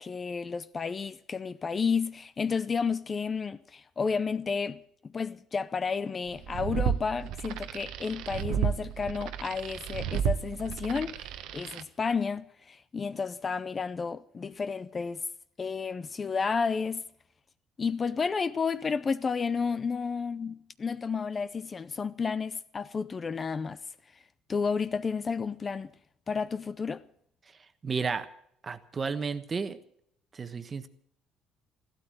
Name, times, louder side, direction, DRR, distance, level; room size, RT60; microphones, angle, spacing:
voice 1, 0.0-15.2 15.6-17.0 17.8-23.8 24.5-25.9 26.3-27.0, left 5 dB, 30° left, 0.5 m, -31 dB
sound 1, 6.3-11.8, right 9 dB, 75° right, 1.1 m, -32 dB
voice 2, 27.8-28.3 28.6-29.8 30.3-30.9, right 5 dB, 30° right, 1.2 m, -32 dB
14.5 x 12.5 x 7.7 m
cardioid pair, 120°, 0 cm